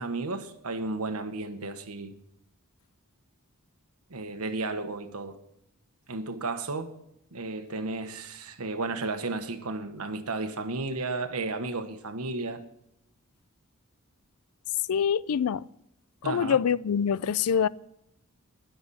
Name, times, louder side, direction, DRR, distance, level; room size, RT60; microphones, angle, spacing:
voice 1, 0.0-2.1 4.1-5.4 6.1-6.9 7.3-12.6 16.2-16.6, right 3 dB, 80° right, 1.3 m, -33 dB
voice 2, 14.9-15.7 16.2-17.7, left 7 dB, 80° left, 0.4 m, -25 dB
20.5 x 7.0 x 4.2 m
head